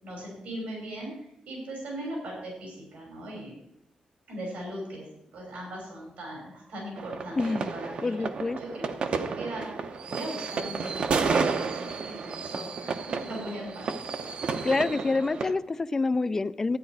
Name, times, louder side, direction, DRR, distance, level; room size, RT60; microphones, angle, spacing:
voice 1, 0.0-3.5 4.3-8.2 8.6-8.9 9.2-12.9 13.2-13.9, right 1 dB, 80° right, -2 dB, 6.0 m, -39 dB
sound 1, 7.0-15.5, right 5 dB, 50° right, 0.8 m, -31 dB
voice 2, 7.4-7.7 8.0-8.6 14.6-16.8, left 3 dB, 20° left, 13 dB, 0.3 m, -27 dB
13.0 x 9.4 x 4.7 m, 0.81 s
wide cardioid pair, 160°, 2 cm